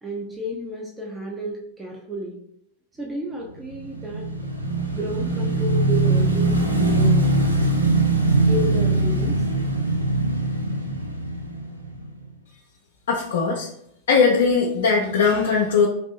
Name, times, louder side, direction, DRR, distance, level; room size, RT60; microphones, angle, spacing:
voice 1, 0.0-2.4 3.0-4.2 4.9-7.5 8.4-9.6, equal, 15° right, -2 dB, 0.6 m, -32 dB
Motorcycle / Engine, 3.7-12.2, right 2 dB, 85° right, 0.5 m, -21 dB
voice 2, 13.1-13.7 14.1-15.9, left 5 dB, 60° left, -1 dB, 0.4 m, -19 dB
3.2 x 2.6 x 2.9 m, 0.74 s
figure-of-eight pair, 90°, 0 cm